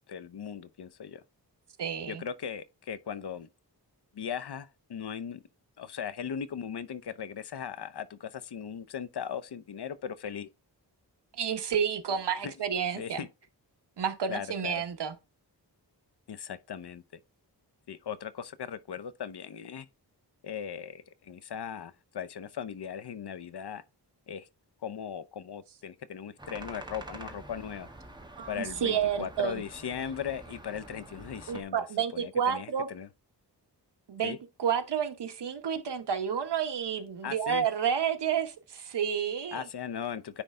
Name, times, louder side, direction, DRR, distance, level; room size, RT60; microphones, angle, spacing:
voice 1, 0.1-1.2 2.1-3.5 4.1-5.4 5.8-10.5 12.4-12.5 13.0-13.3 14.3-14.8 16.3-17.0 17.9-19.9 20.4-23.8 24.3-24.5 24.8-27.9 28.5-31.9 32.1-33.1 34.2-34.4 37.2-37.7 39.5-40.4, left 8 dB, 70° left, 0.8 m, -38 dB
voice 2, 1.8-2.2 11.4-13.2 14.0-15.1 28.4-29.6 31.5-32.9 34.1-39.6, right 8 dB, 75° right, 1.2 m, -30 dB
sound 1, 26.4-31.6, right 2 dB, 10° right, 1.4 m, -47 dB
9.8 x 3.3 x 3.7 m
wide cardioid pair, 115°, 41 cm